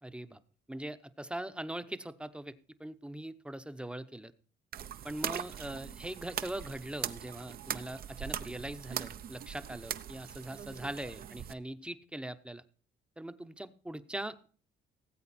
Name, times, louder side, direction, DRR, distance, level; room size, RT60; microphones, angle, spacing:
voice 1, 0.0-0.4 0.7-4.3 5.0-12.6 13.2-14.5, right 1 dB, 5° right, 11 dB, 0.8 m, -41 dB
sound 1, 4.7-11.5, right 9 dB, 55° right, 0.7 m, -41 dB
18.0 x 8.1 x 4.2 m, 0.41 s
cardioid pair, 110°, 19 cm